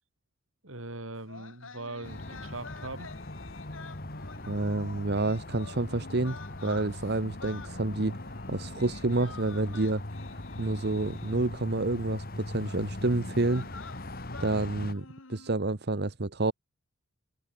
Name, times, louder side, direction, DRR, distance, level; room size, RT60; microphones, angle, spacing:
voice 1, 0.6-3.1, right 2 dB, 75° right, 5.1 m, -40 dB
sound 1, 1.2-11.6 12.6-12.8 13.3-15.5, left 4 dB, 70° left, 2.1 m, -49 dB
sound 2, 2.0-14.9, left 1 dB, 45° left, 2.2 m, -41 dB
voice 2, 4.5-8.2 8.5-10.0 10.6-13.7 14.4-16.5, right 2 dB, 50° right, 1.1 m, -29 dB
head